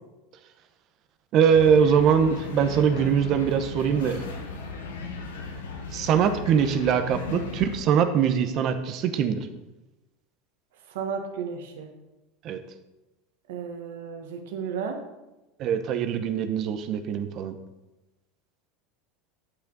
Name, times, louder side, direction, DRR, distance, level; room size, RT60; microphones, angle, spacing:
voice 1, 1.3-4.2 5.9-9.5 12.4-12.6 15.6-17.6, right 7 dB, 50° right, 8 dB, 1.0 m, -22 dB
sound 1, 1.5-7.8, left 4 dB, 90° left, 1.3 m, -36 dB
voice 2, 10.9-11.9 13.5-15.0, right 6 dB, 75° right, 4 dB, 1.4 m, -33 dB
9.0 x 8.1 x 4.0 m, 1.0 s
hypercardioid pair, 100°, 0 cm